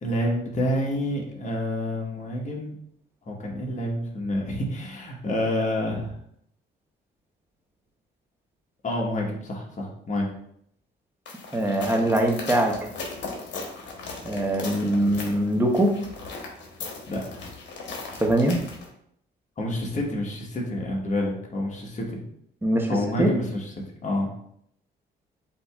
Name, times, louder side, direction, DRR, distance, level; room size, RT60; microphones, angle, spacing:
voice 1, 0.0-2.7 3.3-6.1 8.8-10.3 17.1-17.4 19.6-22.2 22.9-23.7 24.0-24.3, left 1 dB, 40° left, -1 dB, 1.3 m, -28 dB
sound 1, 11.3-18.9, left 3 dB, 65° left, 1.2 m, -38 dB
voice 2, 11.5-12.7 14.2-15.9 18.2-18.6 22.6-22.9 23.2-23.3, right 1 dB, 10° right, 2 dB, 0.9 m, -22 dB
7.6 x 2.8 x 2.4 m, 0.71 s
cardioid pair, 90°, 20 cm